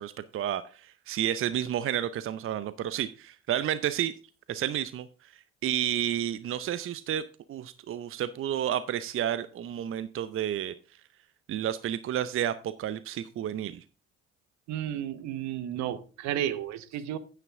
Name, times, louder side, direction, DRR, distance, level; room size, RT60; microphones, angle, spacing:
voice 1, 0.0-4.1 4.5-5.1 5.6-7.2 7.5-10.7 11.5-13.8, right 11 dB, 45° right, 0.6 m, -31 dB
voice 2, 14.7-17.2, right 11 dB, 65° right, 1.0 m, -32 dB
9.3 x 9.1 x 3.6 m
hypercardioid pair, 50°, 31 cm